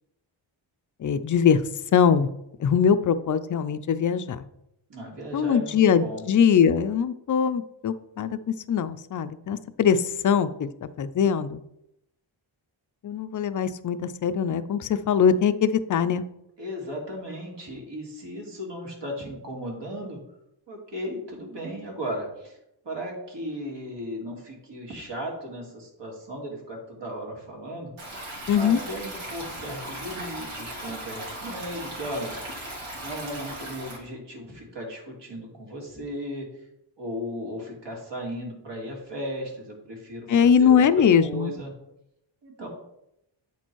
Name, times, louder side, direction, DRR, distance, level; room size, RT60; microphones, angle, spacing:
voice 1, 1.0-1.6 1.9-2.3 2.6-4.4 5.3-8.4 8.7-11.6 13.0-16.2 28.5-28.8 40.3-41.5, left 7 dB, 40° left, 12 dB, 0.5 m, -22 dB
voice 2, 4.9-6.2 16.6-20.2 20.7-22.6 22.8-27.9 28.5-32.4 33.0-36.5 37.0-41.7 42.4-42.7, equal, 60° right, -1 dB, 2.3 m, -36 dB
Stream, 28.0-34.0, right 1 dB, 80° right, 2.5 m, -37 dB
8.4 x 4.4 x 4.6 m, 0.82 s
wide cardioid pair, 105°, 48 cm